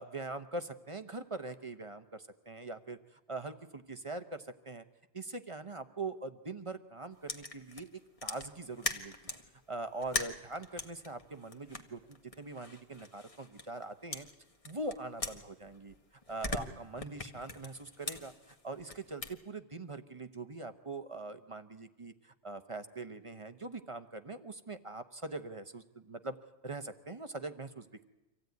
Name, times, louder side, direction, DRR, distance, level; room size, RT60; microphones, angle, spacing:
voice 1, 0.0-4.8 5.1-9.1 9.7-14.3 14.7-26.4 26.6-28.1, right 2 dB, 25° right, 9 dB, 0.9 m, -42 dB
sound 1, 7.3-9.5 10.0-13.8 14.1-16.0 16.2-19.3, left 2 dB, 25° left, 1.4 m, -41 dB
25.5 x 15.5 x 9.4 m, 1.0 s
omnidirectional pair, 1.4 m